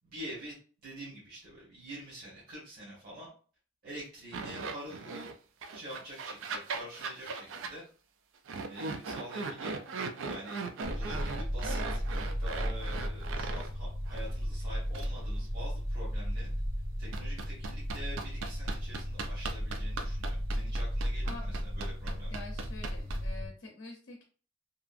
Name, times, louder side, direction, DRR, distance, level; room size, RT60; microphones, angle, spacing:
voice 1, 0.1-0.5 0.8-3.3 3.8-5.3 5.7-7.8 8.7-9.8 10.3-10.6 10.9-12.0 12.4-16.5 17.0-22.5, right 1 dB, 50° right, -5 dB, 1.1 m, -46 dB
sound 1, 4.3-5.3 5.6-7.7 8.5-13.7 14.1-14.2 14.9-15.1 17.1-23.4, right 4 dB, 75° right, 0.4 m, -39 dB
sound 2, 10.8-23.5, equal, 15° right, 0.6 m, -35 dB
voice 2, 22.3-24.2, left 3 dB, 65° left, 1 dB, 0.6 m, -46 dB
2.8 x 2.4 x 2.4 m, 0.40 s
head